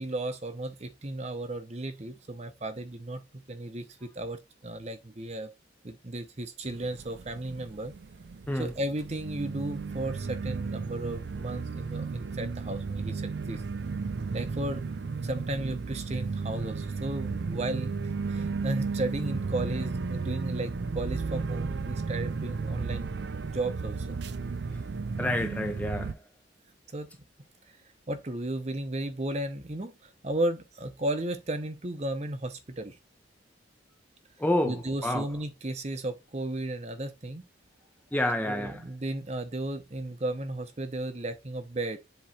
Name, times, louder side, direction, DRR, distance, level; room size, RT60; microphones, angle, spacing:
voice 1, 0.0-5.5 5.8-8.0 8.5-13.6 14.3-14.9 15.2-24.2 26.9-27.1 28.1-33.0 34.6-37.4 38.4-42.0, right 1 dB, 35° right, 0.8 m, -34 dB
sound 1, 6.7-26.1, right 4 dB, 60° right, 0.4 m, -34 dB
voice 2, 25.2-26.2 34.4-35.3 38.1-38.8, left 1 dB, 10° left, 0.5 m, -28 dB
7.7 x 3.1 x 4.2 m
head